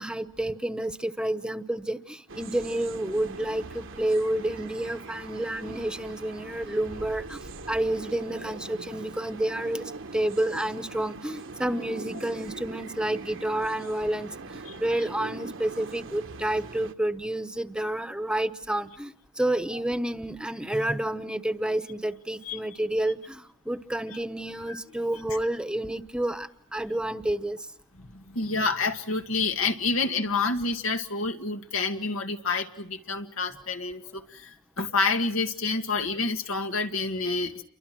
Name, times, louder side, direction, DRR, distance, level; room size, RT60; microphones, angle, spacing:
voice 1, 0.0-7.4 7.7-27.6, right 1 dB, 5° right, 10 dB, 1.0 m, -29 dB
sound 1, 2.3-16.9, right 3 dB, 65° right, 1.3 m, -42 dB
voice 2, 28.1-37.6, left 3 dB, 85° left, 6 dB, 2.1 m, -28 dB
29.0 x 24.0 x 6.1 m, 0.69 s
head